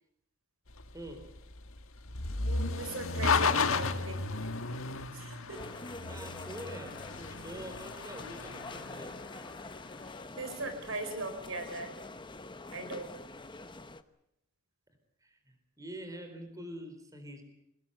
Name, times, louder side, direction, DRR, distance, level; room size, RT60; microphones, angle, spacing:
sound 1, 0.7-10.0, left 4 dB, 75° left, 1.7 m, -34 dB
voice 1, 0.9-1.3 6.1-9.2 15.2-17.4, right 1 dB, 15° right, 7 dB, 4.4 m, -45 dB
voice 2, 2.4-4.3 5.1-5.6 10.4-11.9 12.7-13.2, right 2 dB, 70° right, 8 dB, 4.5 m, -39 dB
sound 2, 5.5-14.0, left 3 dB, 20° left, 1.0 m, -45 dB
24.5 x 20.0 x 8.1 m, 0.79 s
head